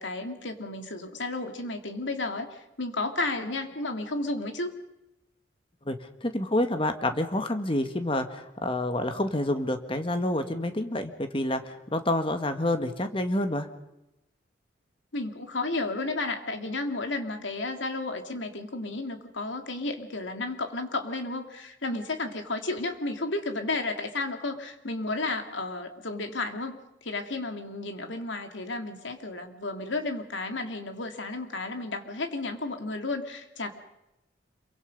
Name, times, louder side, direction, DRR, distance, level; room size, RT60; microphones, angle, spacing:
voice 1, 0.0-4.7 15.1-33.7, left 2 dB, 80° left, 6 dB, 2.6 m, -32 dB
voice 2, 5.9-13.7, left 1 dB, 30° left, 8 dB, 1.8 m, -28 dB
27.0 x 23.5 x 5.4 m, 0.91 s
head